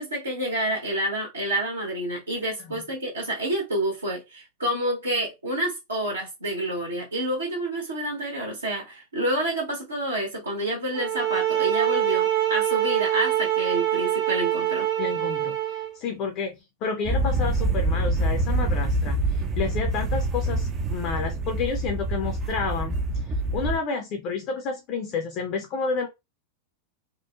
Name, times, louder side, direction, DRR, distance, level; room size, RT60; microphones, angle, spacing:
voice 1, 0.0-14.9, right 1 dB, 75° right, 0.9 m, -28 dB
sound 1, 11.0-15.9, right 12 dB, 45° right, 0.7 m, -24 dB
voice 2, 15.0-23.0 23.5-26.1, left 5 dB, 40° left, 0.5 m, -30 dB
sound 2, 17.1-23.8, right 1 dB, 30° right, 0.3 m, -26 dB
3.0 x 2.0 x 2.2 m
figure-of-eight pair, 90°, 0 cm